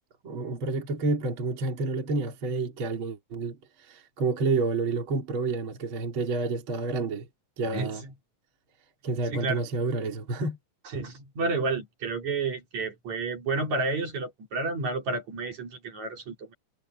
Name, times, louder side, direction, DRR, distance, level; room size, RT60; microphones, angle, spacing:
voice 1, 0.2-7.3 7.6-8.0 9.0-10.6, right 3 dB, 35° right, 3.3 m, -29 dB
voice 2, 7.7-8.1 9.3-9.6 10.9-16.5, right 3 dB, 50° right, 4.5 m, -31 dB
omnidirectional pair, 4.2 m